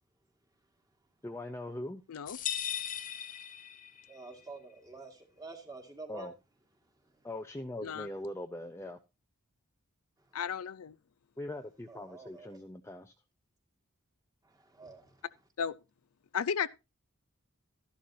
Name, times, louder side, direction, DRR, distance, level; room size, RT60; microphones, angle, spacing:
voice 1, 1.2-2.0 6.1-6.3 7.2-9.0 11.4-13.1, left 1 dB, 10° left, 0.5 m, -41 dB
sound 1, 2.3-4.2, left 10 dB, 40° left, 0.7 m, -37 dB
voice 2, 4.1-6.3 11.9-12.6 14.5-15.1, right 3 dB, 15° right, 2.0 m, -48 dB
voice 3, 10.3-10.9 15.6-15.7 16.3-16.7, left 7 dB, 80° left, 0.5 m, -33 dB
12.5 x 11.5 x 2.7 m
head